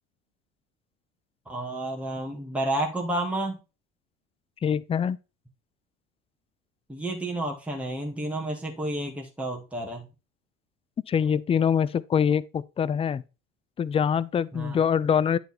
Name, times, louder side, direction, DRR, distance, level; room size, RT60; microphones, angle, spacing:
voice 1, 1.5-3.6 6.9-10.1 14.5-14.8, right 1 dB, 5° right, 2.0 m, -31 dB
voice 2, 4.6-5.2 11.1-13.2 13.8-15.4, left 7 dB, 15° left, 0.4 m, -24 dB
10.5 x 4.2 x 4.4 m
figure-of-eight pair, 65°, 40 cm